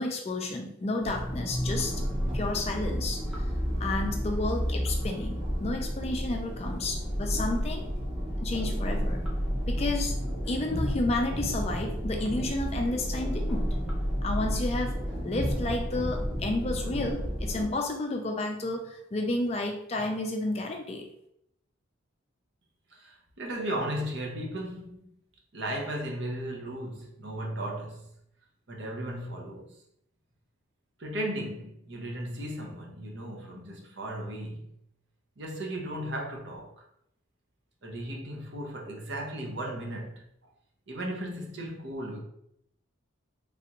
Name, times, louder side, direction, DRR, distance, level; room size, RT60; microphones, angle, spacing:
voice 1, 0.0-2.0 2.3-3.5 3.8-7.8 8.4-9.2 9.7-10.2 10.5-13.7 14.2-15.0 15.2-21.0, left 2 dB, 30° left, 0.3 m, -31 dB
sound 1, 1.0-17.7, equal, 5° right, 0.7 m, -31 dB
voice 2, 22.9-25.1 25.5-28.1 28.7-29.8 31.0-34.6 35.4-36.8 37.8-40.2 40.9-42.2, right 1 dB, 55° right, 0.7 m, -36 dB
3.3 x 2.5 x 2.8 m
head